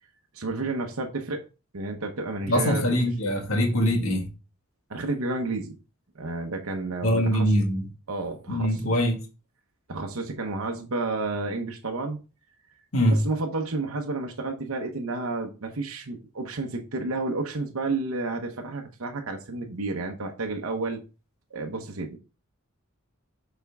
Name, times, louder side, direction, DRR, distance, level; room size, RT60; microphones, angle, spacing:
voice 1, 0.3-1.4 1.7-3.0 4.9-5.7 6.1-7.5 8.1-8.8 9.9-12.2 13.1-21.0 21.5-22.2, right 3 dB, 90° right, 0.9 m, -31 dB
voice 2, 2.5-4.3 7.0-7.8 8.5-9.2 12.9-13.2, equal, 85° left, 1.7 m, -23 dB
7.0 x 4.4 x 3.5 m
head